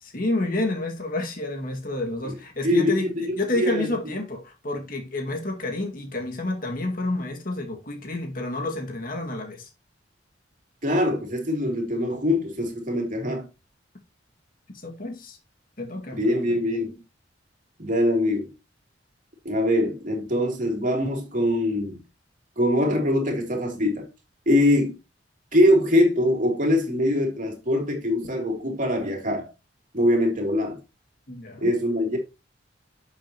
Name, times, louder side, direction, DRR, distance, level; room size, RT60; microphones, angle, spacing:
voice 1, 0.0-9.7 14.8-15.4 15.8-16.5 31.3-31.7, left 2 dB, 50° left, 2.2 m, -29 dB
voice 2, 2.6-3.9 10.8-13.5 16.1-16.9 17.8-18.5 19.4-22.0 22.6-24.1 24.4-24.9 25.5-29.5 29.9-30.8 31.6-32.2, left 1 dB, 45° right, 3.2 m, -23 dB
11.0 x 7.1 x 3.0 m
head